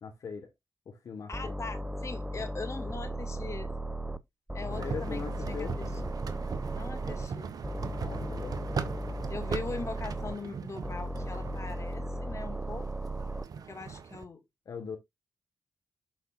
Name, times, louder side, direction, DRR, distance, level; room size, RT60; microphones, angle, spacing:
voice 1, 0.0-0.5 0.9-1.6 2.3-2.4 4.8-5.8 8.0-8.6 14.7-15.0, left 6 dB, 65° left, 1.4 m, -40 dB
voice 2, 1.3-3.7 4.5-5.2 5.5-6.0 6.7-7.5 9.3-12.9 13.7-14.4, left 4 dB, 45° left, 2.1 m, -41 dB
sound 1, 1.3-4.2 4.5-7.3 7.6-10.4 10.8-13.4, right 1 dB, 10° right, 0.7 m, -36 dB
sound 2, 4.7-14.3, right 6 dB, 60° right, 1.0 m, -40 dB
12.0 x 4.1 x 2.5 m
supercardioid pair, 45°, 7 cm